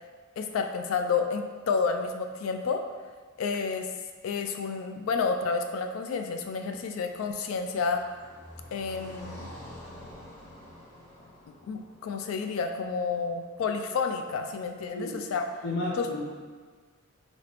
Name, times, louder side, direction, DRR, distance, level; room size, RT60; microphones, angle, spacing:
voice 1, 0.4-2.8 3.4-3.9 4.2-8.0 8.7-9.5 11.6-15.4 16.0-16.1, left 5 dB, 80° left, 6 dB, 0.3 m, -30 dB
Car passing by, 6.2-13.4, equal, 35° left, 1.3 m, -48 dB
voice 2, 15.6-16.2, left 2 dB, 65° left, -8 dB, 1.2 m, -32 dB
3.3 x 2.8 x 2.9 m, 1.6 s
head